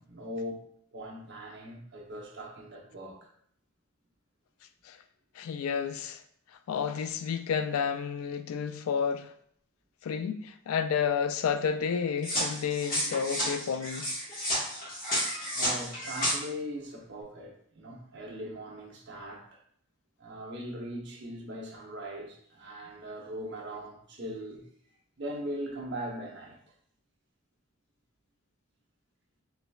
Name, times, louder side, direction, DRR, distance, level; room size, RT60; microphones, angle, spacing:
voice 1, 0.0-3.3 15.3-19.6 20.2-24.7 25.2-26.6, equal, 55° right, 0.9 m, -40 dB
voice 2, 5.4-6.2 6.7-9.3 10.0-14.1, left 7 dB, 85° left, 0.3 m, -30 dB
sound 1, 12.2-16.3, equal, 40° left, 1.4 m, -31 dB
4.7 x 3.3 x 2.3 m
head